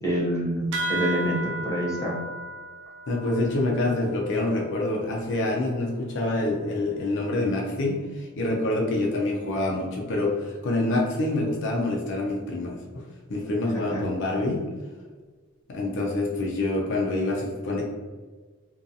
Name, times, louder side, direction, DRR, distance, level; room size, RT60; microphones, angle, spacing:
voice 1, 0.0-1.4 1.6-2.2 13.9-14.0, right 1 dB, 15° left, -5 dB, 0.6 m, -26 dB
sound 1, 0.7-5.7, right 1 dB, 55° right, 0.3 m, -35 dB
voice 2, 3.1-13.0 13.3-14.6 15.7-17.8, left 2 dB, 55° left, -1 dB, 0.4 m, -26 dB
2.5 x 2.3 x 2.6 m, 1.4 s
head